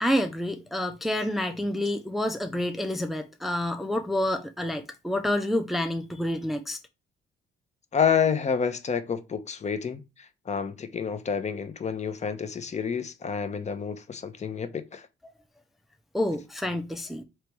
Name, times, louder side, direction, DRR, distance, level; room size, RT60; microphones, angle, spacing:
voice 1, 0.0-6.8 15.2-15.3 16.1-17.2, left 1 dB, ahead, 0.5 m, -28 dB
voice 2, 7.9-10.0 10.5-15.1, left 6 dB, 35° left, 0.7 m, -28 dB
3.3 x 3.0 x 4.6 m
cardioid pair, 90°, 20 cm